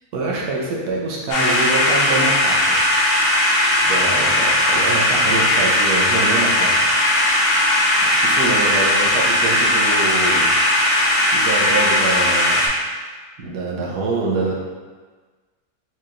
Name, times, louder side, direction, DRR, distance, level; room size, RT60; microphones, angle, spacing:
voice 1, 0.1-2.8 3.8-6.9 8.2-10.5 11.3-12.7 13.4-14.6, right 3 dB, 80° right, -3 dB, 1.3 m, -25 dB
sound 1, 1.3-12.7, left 1 dB, 85° left, 1.3 m, -17 dB
4.6 x 2.9 x 2.5 m, 1.4 s
omnidirectional pair, 1.7 m